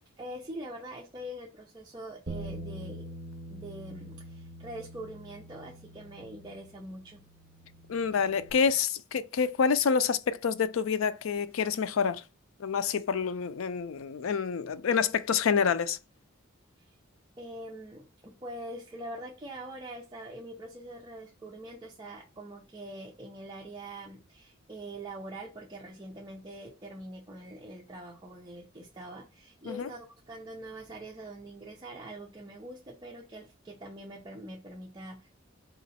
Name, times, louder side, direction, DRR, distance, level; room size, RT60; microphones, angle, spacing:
voice 1, 0.2-3.1 3.5-7.2 16.8-16.9 17.4-35.3, right 1 dB, 20° right, 0.6 m, -44 dB
Bass guitar, 2.3-8.5, right 1 dB, 55° right, 0.8 m, -44 dB
voice 2, 7.9-12.2 12.6-16.0 29.7-29.8, left 6 dB, 85° left, 0.4 m, -27 dB
3.8 x 3.0 x 4.1 m
head